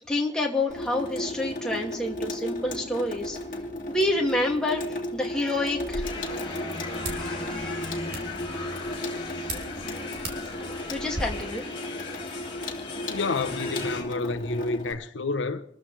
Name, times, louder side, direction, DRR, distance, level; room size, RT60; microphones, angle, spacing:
voice 1, 0.1-3.4 3.9-6.8 7.1-8.1 10.9-11.7, left 2 dB, 5° left, 2.2 m, -29 dB
Water tap faucet / Sink (filling or washing), 0.7-14.9, left 1 dB, 45° left, 2.3 m, -35 dB
sound 1, 5.7-11.2, right 1 dB, 50° right, 3.4 m, -40 dB
sound 2, 6.0-14.0, left 3 dB, 30° left, 3.9 m, -37 dB
voice 2, 13.1-15.6, left 3 dB, 80° left, 0.8 m, -29 dB
27.0 x 13.5 x 3.3 m
head